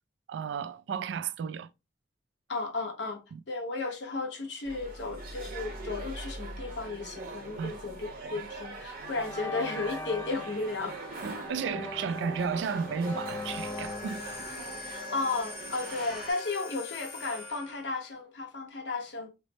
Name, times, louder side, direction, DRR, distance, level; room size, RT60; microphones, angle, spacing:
voice 1, 0.3-1.7 3.3-3.4 7.6-7.8 8.2-8.3 11.2-14.2, right 6 dB, 85° right, 0.3 m, -33 dB
voice 2, 2.5-3.2 3.5-11.2 14.8-19.3, left 3 dB, 80° left, 0.9 m, -34 dB
sound 1, 4.6-16.3, right 2 dB, 50° right, 0.9 m, -42 dB
sound 2, 8.4-8.7 9.1-15.9, left 2 dB, 15° left, 0.3 m, -41 dB
sound 3, 13.3-18.1, left 3 dB, 30° left, 1.1 m, -43 dB
3.2 x 2.0 x 4.0 m
head